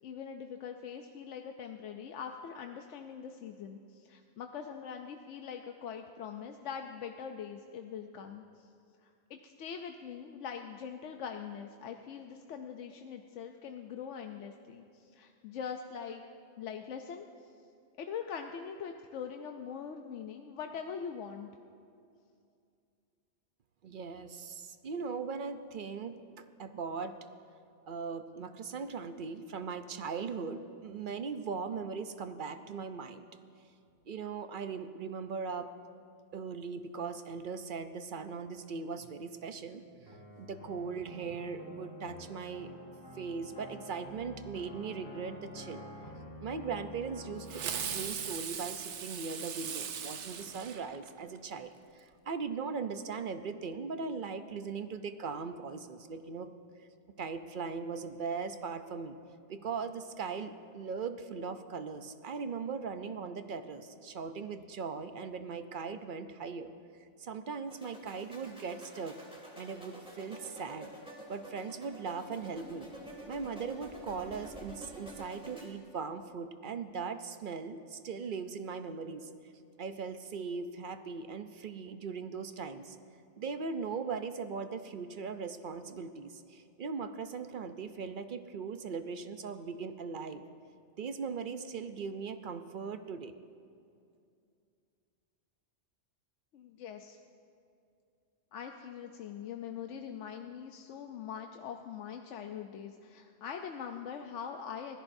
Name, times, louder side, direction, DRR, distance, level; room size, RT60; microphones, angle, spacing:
voice 1, 0.0-8.7 9.0-16.2 16.6-17.5 18.0-21.5 96.5-97.2 98.5-105.0, left 7 dB, 85° left, 5 dB, 1.0 m, -43 dB
voice 2, 23.8-27.2 27.9-33.3 34.1-35.7 36.3-42.7 43.1-45.8 46.4-56.5 56.8-56.9 57.2-59.2 59.5-66.7 67.2-69.2 69.5-70.9 71.3-72.9 73.3-79.3 79.8-83.0 83.4-90.4 91.0-93.3, right 5 dB, 55° right, 9 dB, 0.7 m, -39 dB
sound 1, 40.1-48.0, left 1 dB, 50° left, 2.7 m, -48 dB
Fireworks, 47.5-51.4, right 7 dB, 75° right, 1.1 m, -39 dB
sound 2, 67.7-75.7, right 1 dB, 5° right, 2.3 m, -49 dB
24.5 x 16.5 x 2.6 m, 2.5 s
omnidirectional pair, 1.2 m